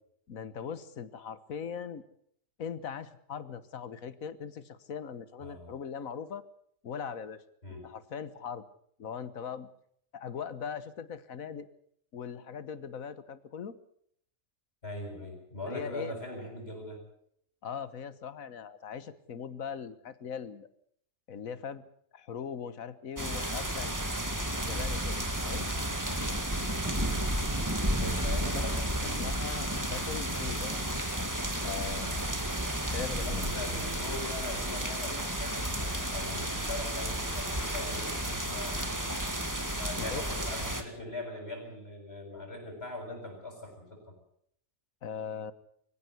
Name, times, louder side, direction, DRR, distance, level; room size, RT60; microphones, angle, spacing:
voice 1, 0.3-2.0 2.6-6.4 6.8-7.4 7.8-8.6 9.0-9.7 10.1-11.7 12.1-13.7 15.7-16.2 17.6-20.7 21.3-21.8 22.1-23.9 24.6-25.7 28.5-28.6 29.2-30.8 31.6-32.3 32.9-33.7 40.0-40.2 45.0-45.5, left 7 dB, 85° left, 14 dB, 1.6 m, -40 dB
voice 2, 5.4-5.8 7.6-7.9 14.8-17.0 25.6-25.8 26.8-27.3 28.0-29.3 32.0-32.2 33.3-39.2 39.7-44.0, left 1 dB, 45° left, 0 dB, 7.3 m, -41 dB
sound 1, 23.2-40.8, right 1 dB, 15° right, 2.2 m, -32 dB
23.5 x 16.0 x 8.2 m, 0.67 s
omnidirectional pair, 1.4 m